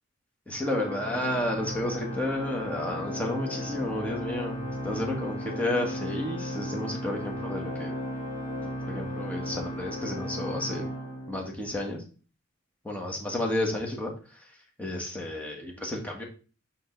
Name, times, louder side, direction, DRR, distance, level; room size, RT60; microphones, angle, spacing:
voice 1, 0.5-7.9 8.8-10.8 11.3-12.0 12.8-14.1 14.8-16.2, left 1 dB, 5° left, -1 dB, 1.5 m, -31 dB
Organ, 0.6-11.8, equal, 45° left, 2.9 m, -35 dB
5.7 x 5.2 x 3.9 m, 0.37 s
head